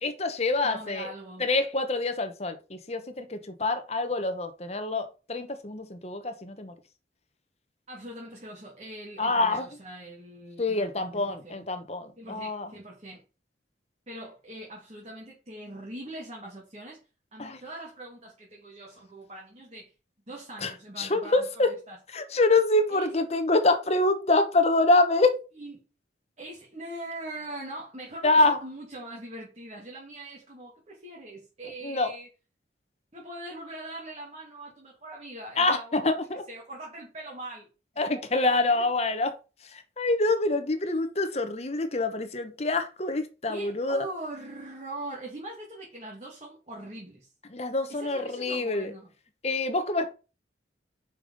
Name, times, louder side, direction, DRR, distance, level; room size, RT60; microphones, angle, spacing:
voice 1, 0.0-1.1 1.4-6.7 9.2-9.7 10.6-12.7 17.4-17.6 20.6-20.7 21.0-21.7 22.1-25.4 28.2-28.6 31.8-32.1 35.6-36.4 38.0-39.3 39.7-44.1 47.5-48.9 49.4-50.1, left 2 dB, 35° left, 1.1 m, -26 dB
voice 2, 0.6-1.5 7.9-11.7 12.2-13.2 14.1-17.0 17.3-19.9 20.3-22.0 22.9-23.1 25.5-25.8 26.4-32.3 33.1-36.2 36.5-37.7 38.0-38.2 43.5-47.3 47.9-49.1, right 1 dB, 35° right, 2.2 m, -42 dB
5.7 x 5.2 x 5.4 m
head